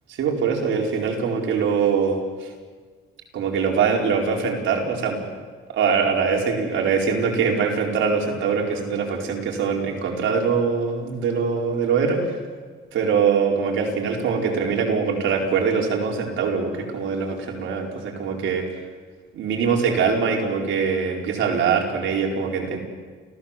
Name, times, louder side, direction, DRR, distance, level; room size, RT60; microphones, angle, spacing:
voice 1, 0.2-2.5 3.3-5.2 5.7-12.4 12.9-18.8 19.3-22.8, right 5 dB, 75° right, 0 dB, 4.6 m, -23 dB
29.5 x 16.0 x 7.5 m, 1.5 s
cardioid pair, 90°, 20 cm